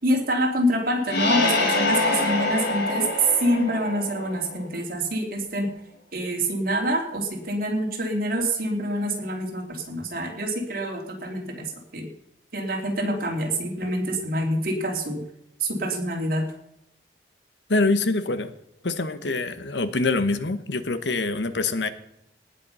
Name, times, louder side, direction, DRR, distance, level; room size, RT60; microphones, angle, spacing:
voice 1, 0.0-5.7 6.1-12.1 12.5-15.2 15.6-16.5, right 1 dB, 55° right, 1 dB, 3.2 m, -26 dB
sound 1, 1.1-4.7, left 2 dB, 65° left, 2.9 m, -25 dB
voice 2, 17.7-18.5 18.8-21.9, left 3 dB, 85° left, 12 dB, 1.1 m, -25 dB
18.5 x 7.5 x 5.6 m, 0.78 s
head